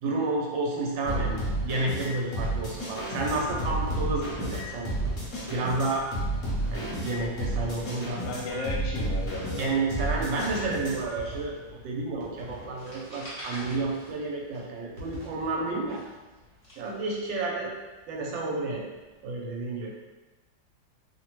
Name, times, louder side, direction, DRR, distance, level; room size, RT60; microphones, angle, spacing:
voice 1, 0.0-4.9 5.5-6.0 6.7-8.2 9.6-16.0 16.8-17.7 18.1-18.8 19.2-19.9, right 3 dB, 85° right, -2 dB, 1.3 m, -30 dB
sound 1, 0.9-16.9 17.2-17.3 17.5-17.6 18.9-19.2, equal, 70° right, 1.2 m, -43 dB
sound 2, 1.1-11.2, right 1 dB, 55° left, 1.0 m, -32 dB
voice 2, 8.2-9.7, left 2 dB, 80° left, -3 dB, 1.3 m, -34 dB
sound 3, 12.8-14.8 15.1-17.3, equal, 30° left, 0.8 m, -44 dB
3.1 x 2.1 x 2.9 m, 1.2 s
omnidirectional pair, 2.0 m